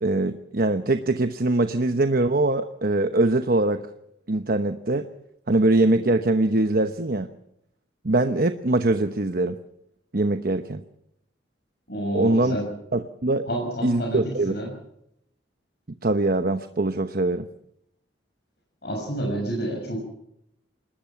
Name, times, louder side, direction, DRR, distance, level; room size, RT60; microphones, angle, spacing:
voice 1, 0.0-3.8 4.3-5.1 5.5-7.3 8.0-9.6 10.1-10.8 12.1-12.6 12.9-13.4 13.8-14.5 16.0-17.5, right 2 dB, 55° right, 9 dB, 1.0 m, -22 dB
voice 2, 11.9-12.7 13.5-14.7 18.8-20.1, right 1 dB, 60° left, 0 dB, 6.4 m, -29 dB
27.0 x 20.5 x 5.9 m, 0.77 s
head